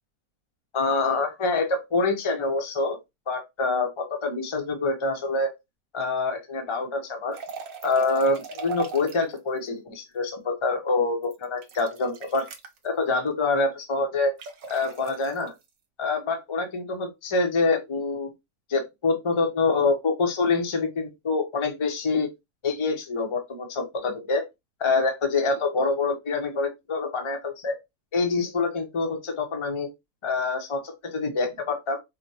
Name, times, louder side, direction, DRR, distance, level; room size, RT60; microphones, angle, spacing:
voice 1, 0.7-3.0 3.3-5.5 5.9-7.4 7.8-12.5 12.8-14.3 14.7-15.5 16.0-18.3 18.7-22.3 22.6-24.4 24.8-27.7 28.1-29.9 30.2-32.0, left 3 dB, 30° left, 0.6 m, -26 dB
sound 1, 7.3-9.4 11.2-12.8 14.4-15.5, right 5 dB, 65° right, 1.1 m, -38 dB
4.9 x 2.1 x 2.8 m
omnidirectional pair, 1.6 m